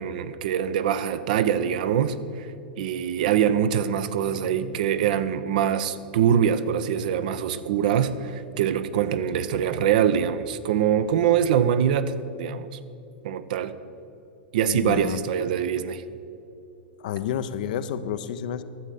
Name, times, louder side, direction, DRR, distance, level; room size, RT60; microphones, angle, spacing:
voice 1, 0.0-2.5 2.8-12.7 13.2-13.8 14.5-16.0, right 9 dB, 55° right, 12 dB, 0.6 m, -24 dB
voice 2, 14.7-15.3 17.0-18.6, left 9 dB, 55° left, 12 dB, 0.5 m, -30 dB
12.0 x 7.4 x 6.5 m, 2.7 s
figure-of-eight pair, 95°, 5 cm